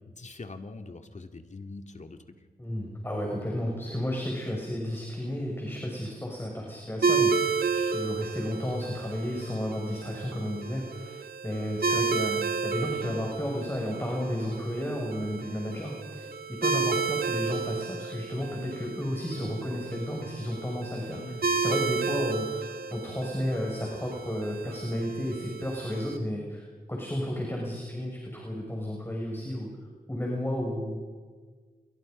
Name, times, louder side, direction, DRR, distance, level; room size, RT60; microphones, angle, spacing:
voice 1, 0.1-2.2 11.8-12.0 21.1-21.8, left 3 dB, 50° left, 6 dB, 2.2 m, -43 dB
voice 2, 2.6-21.2 21.5-29.7 30.1-31.0, equal, 15° left, -1 dB, 6.7 m, -33 dB
sound 1, 7.0-26.2, right 5 dB, 70° right, 1.7 m, -32 dB
28.0 x 23.0 x 5.4 m, 1.5 s
cardioid pair, 50°, 16 cm